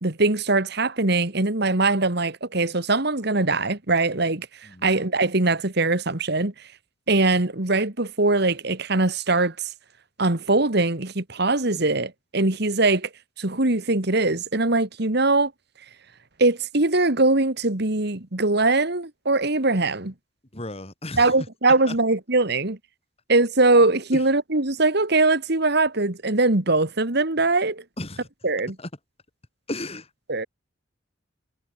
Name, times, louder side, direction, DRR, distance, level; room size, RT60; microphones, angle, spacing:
voice 1, 0.0-4.5 4.8-6.5 7.1-9.7 10.2-13.1 13.4-15.5 16.4-20.1 21.2-22.8 23.3-27.8 28.4-28.8 30.3-30.5, right 2 dB, 55° right, 2.2 m, -21 dB
voice 2, 20.5-21.3 28.0-28.2 29.7-30.0, left 2 dB, 30° left, 3.6 m, -33 dB
head